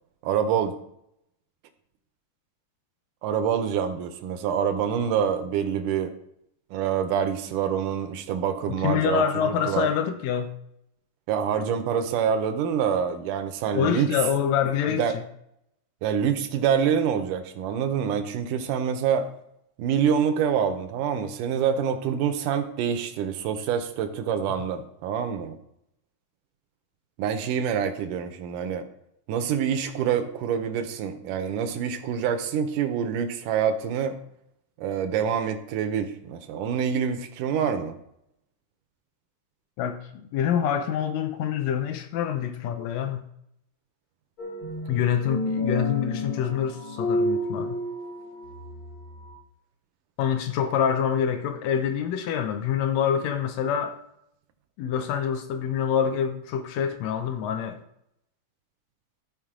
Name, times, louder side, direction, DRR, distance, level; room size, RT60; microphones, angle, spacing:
voice 1, 0.2-0.8 3.2-6.1 6.7-9.9 11.3-14.2 14.9-15.2 16.0-19.3 19.8-25.6 27.2-28.8 29.3-34.2 34.8-38.0, right 8 dB, 75° right, 2.3 m, -26 dB
voice 2, 8.7-10.5 13.7-15.2 39.8-43.2 44.9-47.8 50.2-54.0 54.8-57.8, left 8 dB, 90° left, 1.5 m, -26 dB
sound 1, 44.4-49.3, left 1 dB, 45° left, 2.0 m, -30 dB
14.5 x 5.2 x 3.7 m
omnidirectional pair, 3.9 m